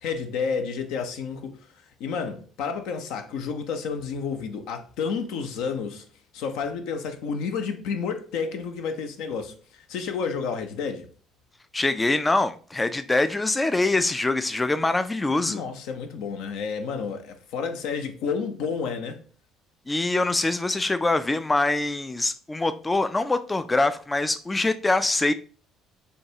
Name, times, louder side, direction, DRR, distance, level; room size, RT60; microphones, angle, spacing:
voice 1, 0.0-1.6 2.0-6.0 6.3-11.1 15.4-19.2, left 5 dB, 65° left, 0.5 m, -30 dB
voice 2, 11.7-15.6 19.9-25.3, left 2 dB, 20° left, 0.3 m, -24 dB
6.3 x 2.3 x 2.7 m
hypercardioid pair, 55°, 0 cm